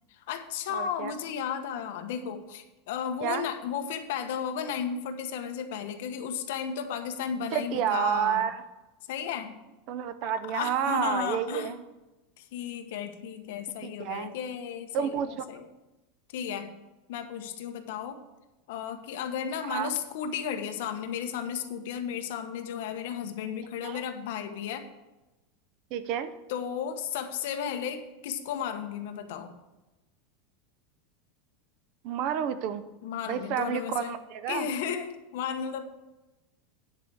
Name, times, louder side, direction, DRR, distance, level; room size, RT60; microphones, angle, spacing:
voice 1, 0.1-8.4 9.1-9.6 10.2-11.7 12.4-15.7 16.3-16.7 17.1-18.2 18.7-24.9 26.5-29.5 33.0-34.1 34.5-35.8, left 8 dB, 60° left, 6 dB, 1.0 m, -34 dB
voice 2, 0.7-1.1 3.2-3.5 7.5-8.6 9.9-11.8 14.0-14.3 14.9-15.3 19.6-19.9 23.8-24.0 25.9-26.3 32.0-32.8 33.3-34.7, right 9 dB, 35° right, 13 dB, 0.5 m, -30 dB
10.0 x 4.8 x 7.7 m, 1.1 s
supercardioid pair, 180°, 0 cm